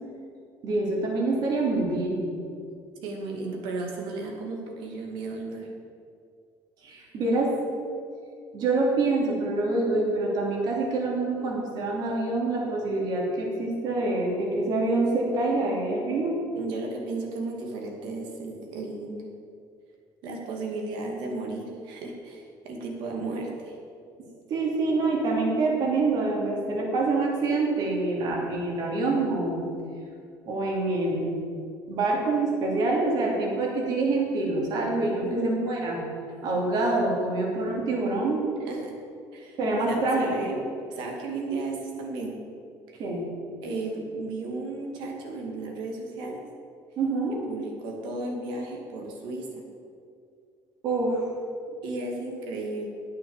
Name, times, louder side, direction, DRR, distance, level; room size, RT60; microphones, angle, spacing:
voice 1, 0.6-2.3 6.8-7.6 8.5-16.4 24.2-29.7 30.4-31.4 31.9-36.0 36.4-38.5 39.6-40.5 43.0-43.2 47.0-47.4 50.8-51.2, right 2 dB, 55° right, -1 dB, 3.0 m, -26 dB
voice 2, 3.0-5.7 16.6-19.2 20.2-23.7 35.2-35.6 38.7-38.9 39.3-39.6 39.8-40.6 40.9-42.4 42.9-43.0 43.6-46.4 47.5-49.6 51.8-52.9, right 3 dB, 75° right, 1 dB, 2.4 m, -34 dB
9.9 x 8.5 x 7.3 m, 2.3 s
cardioid pair, 130°, 8 cm